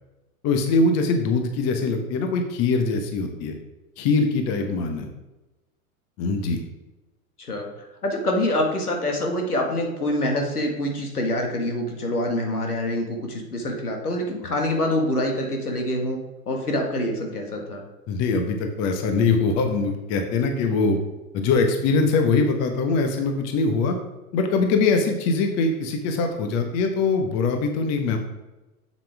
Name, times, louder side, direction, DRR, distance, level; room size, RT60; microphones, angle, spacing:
voice 1, 0.4-3.5 4.0-5.1 6.2-6.6 18.1-21.0 21.3-24.0 24.3-28.2, left 4 dB, 35° left, 5 dB, 1.2 m, -22 dB
voice 2, 8.0-16.2 16.5-17.8, left 1 dB, 85° left, 2 dB, 1.8 m, -25 dB
7.5 x 7.3 x 3.4 m, 1.0 s
figure-of-eight pair, 100°, 44 cm